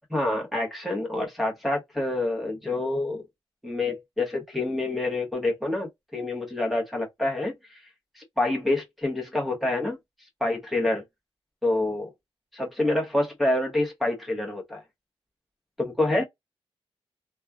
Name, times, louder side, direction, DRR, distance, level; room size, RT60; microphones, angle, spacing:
voice 1, 0.1-3.2 3.6-7.8 8.2-10.0 10.4-11.0 11.6-12.1 12.5-14.8 15.8-16.2, left 2 dB, ahead, 1.1 m, -27 dB
3.1 x 2.2 x 2.3 m
wide cardioid pair, 180°, 10 cm